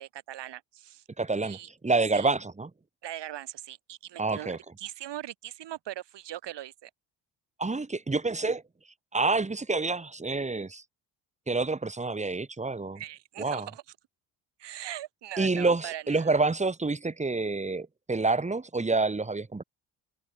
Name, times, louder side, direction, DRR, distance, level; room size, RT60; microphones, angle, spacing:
voice 1, 0.0-1.0 1.4-1.7 2.1-2.3 3.0-6.9 13.0-13.8 14.6-16.4, right 13 dB, 70° right, 1.6 m, -40 dB
voice 2, 1.2-1.6 1.8-2.7 4.2-4.6 7.6-8.6 9.1-10.8 11.5-13.0 13.4-13.7 15.4-19.6, right 3 dB, 15° right, 1.3 m, -28 dB
open air
supercardioid pair, 60°, 44 cm